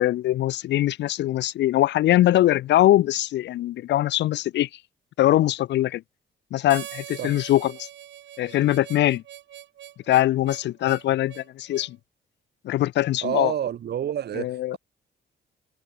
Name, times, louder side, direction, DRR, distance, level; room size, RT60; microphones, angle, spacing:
voice 1, 0.0-4.7 5.2-6.0 6.5-7.9 8.4-9.2 10.1-12.0 12.6-13.5 14.4-14.8, left 14 dB, 70° left, 0.4 m, -22 dB
Harmonica, 6.7-11.9, right 12 dB, 80° right, 2.5 m, -42 dB
voice 2, 13.2-14.8, right 10 dB, 60° right, 2.1 m, -29 dB
cardioid pair, 130°, 19 cm